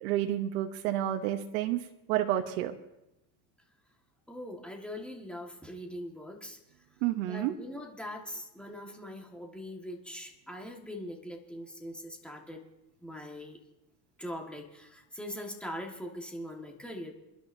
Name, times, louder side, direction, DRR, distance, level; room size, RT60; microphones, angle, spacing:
voice 1, 0.0-1.8 2.1-2.7 7.0-7.5, right 12 dB, 85° right, 6 dB, 1.0 m, -30 dB
voice 2, 4.3-6.6 7.2-12.6 13.0-13.6 14.2-17.1, equal, 5° left, 1 dB, 1.5 m, -42 dB
28.0 x 11.0 x 2.6 m, 0.92 s
cardioid pair, 155°, 43 cm